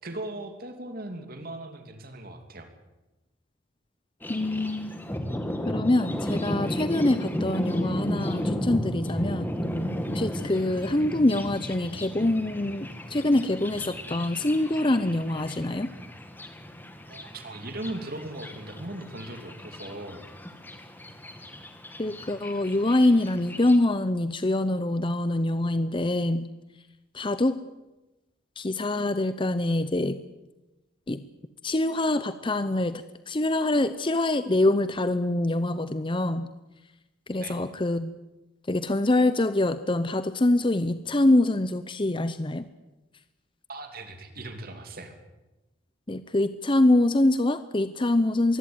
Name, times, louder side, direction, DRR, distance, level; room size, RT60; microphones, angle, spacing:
voice 1, 0.0-2.7 17.1-20.2 37.3-37.6 43.7-45.1, right 1 dB, 50° right, 6 dB, 3.0 m, -38 dB
Thunder, 4.2-23.8, equal, 10° left, 2.0 m, -34 dB
voice 2, 4.3-5.0 5.7-9.5 10.1-15.9 22.0-26.5 27.1-27.6 28.6-30.2 31.1-31.2 31.6-36.5 37.3-38.1 38.7-42.6 46.1-48.6, left 1 dB, 25° left, 12 dB, 0.7 m, -25 dB
23.0 x 16.5 x 9.6 m, 1.1 s
head